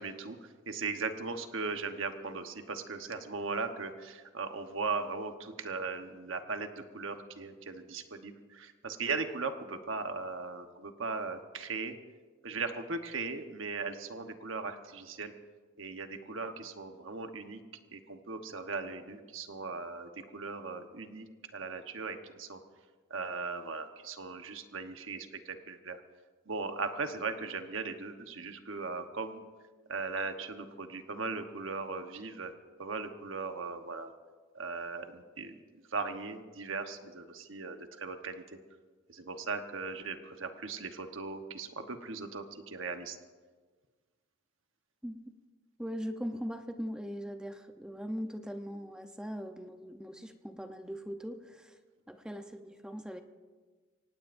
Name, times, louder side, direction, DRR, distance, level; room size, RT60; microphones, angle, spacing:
voice 1, 0.0-12.0 12.4-15.3 15.8-17.6 17.9-21.3 21.5-22.6 23.1-26.0 26.5-29.4 29.9-32.5 32.8-34.1 34.5-35.6 35.9-38.6 39.1-43.2, right 4 dB, 75° right, 6 dB, 1.1 m, -38 dB
voice 2, 45.8-51.8 52.1-53.2, equal, 5° right, 6 dB, 0.7 m, -40 dB
24.5 x 18.5 x 2.6 m, 1.4 s
head